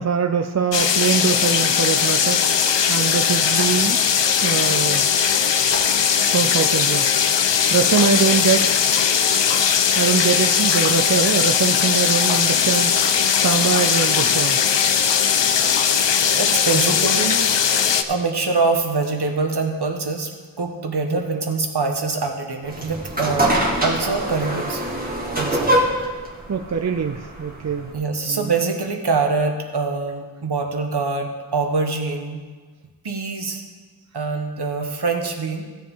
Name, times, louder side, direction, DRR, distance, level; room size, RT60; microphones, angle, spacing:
voice 1, 0.0-2.4 2.9-4.0 4.4-5.1 6.3-7.1 7.7-8.8 10.0-13.0 13.3-14.6 21.1-21.4 26.5-27.9 28.3-28.5, right 6 dB, 40° right, 6 dB, 0.5 m, -22 dB
sound 1, 0.7-18.0, left 7 dB, 90° left, 0.6 m, -19 dB
sound 2, 1.2-1.5 2.4-2.5 2.7-2.8 3.5-3.8 4.5-4.7 5.2-5.3 5.7-6.0, left 1 dB, 25° left, 1.6 m, -35 dB
voice 2, 16.0-17.5 18.0-20.3 20.6-24.8 25.4-26.1 27.9-32.4 33.0-33.6 34.1-35.7, right 4 dB, 65° right, 3 dB, 1.3 m, -24 dB
sound 3, 22.6-27.9, right 1 dB, 20° right, 1.7 m, -24 dB
15.5 x 7.3 x 3.7 m, 1.4 s
wide cardioid pair, 85°, 42 cm